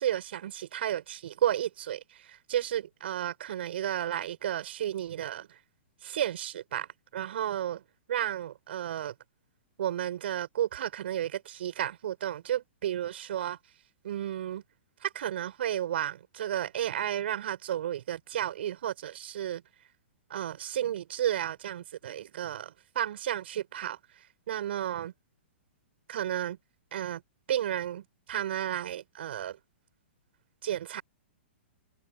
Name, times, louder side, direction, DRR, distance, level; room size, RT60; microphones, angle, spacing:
voice 1, 0.0-5.6 6.0-7.8 8.1-9.1 9.8-13.6 14.0-14.6 15.0-19.6 20.3-24.0 24.5-25.1 26.1-26.6 26.9-27.2 27.5-29.6 30.6-31.0, right 11 dB, 65° right, 6.9 m, -32 dB
hypercardioid pair, 125°, 6 cm